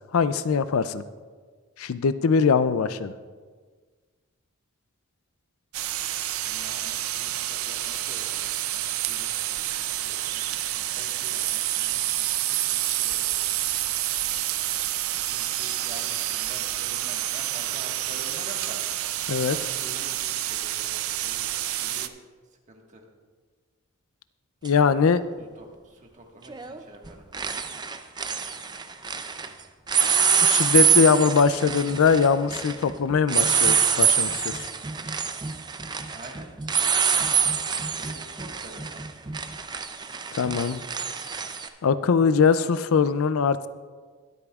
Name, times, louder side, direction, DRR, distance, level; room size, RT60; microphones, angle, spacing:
voice 1, 0.1-1.0 1.8-3.1 19.3-19.6 24.6-25.2 30.4-34.6 40.4-40.8 41.8-43.7, left 5 dB, 75° left, 13 dB, 0.4 m, -21 dB
sound 1, 5.7-22.1, right 13 dB, 75° right, 0.5 m, -28 dB
voice 2, 6.5-13.4 15.2-18.8 19.4-22.1 22.7-23.0 25.4-27.3 36.1-37.6 38.0-39.1, right 1 dB, 35° right, 0 dB, 1.6 m, -47 dB
sound 2, 24.6-24.7 26.5-26.8 27.0-29.5 29.9-41.7, right 7 dB, 20° right, 0.5 m, -25 dB
22.0 x 8.4 x 2.4 m, 1.5 s
head